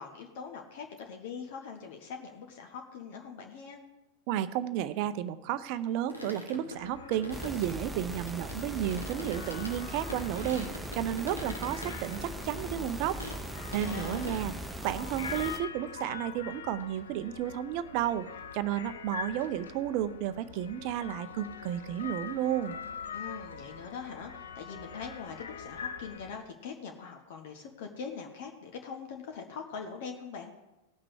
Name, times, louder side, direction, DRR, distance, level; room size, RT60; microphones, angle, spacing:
voice 1, 0.0-3.8 13.8-14.5 23.1-30.5, left 6 dB, 50° left, 3 dB, 1.1 m, -42 dB
voice 2, 4.3-13.2 13.7-14.5 14.8-18.3 18.5-22.8, right 11 dB, 45° right, 14 dB, 0.6 m, -32 dB
sound 1, 5.8-9.8 10.1-11.9 12.3-12.4 12.6-12.7 13.2-13.4 13.7-14.4, left 1 dB, 85° left, 1.5 m, -43 dB
sound 2, 6.8-26.4, left 6 dB, 65° left, 0.8 m, -44 dB
sound 3, 7.3-15.6, right 1 dB, 5° right, 0.6 m, -40 dB
18.0 x 5.9 x 4.8 m, 1.0 s
figure-of-eight pair, 90°, 0 cm